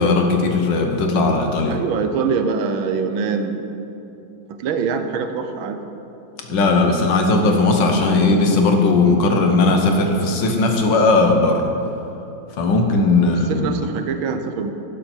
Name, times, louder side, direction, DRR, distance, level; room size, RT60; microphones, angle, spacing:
voice 1, 0.0-1.8 6.5-11.7 12.6-13.7, left 3 dB, 65° left, 3 dB, 1.8 m, -17 dB
voice 2, 1.7-3.6 4.6-5.8 13.5-14.7, right 5 dB, 85° right, 7 dB, 1.6 m, -23 dB
11.5 x 11.0 x 4.5 m, 2.9 s
omnidirectional pair, 2.1 m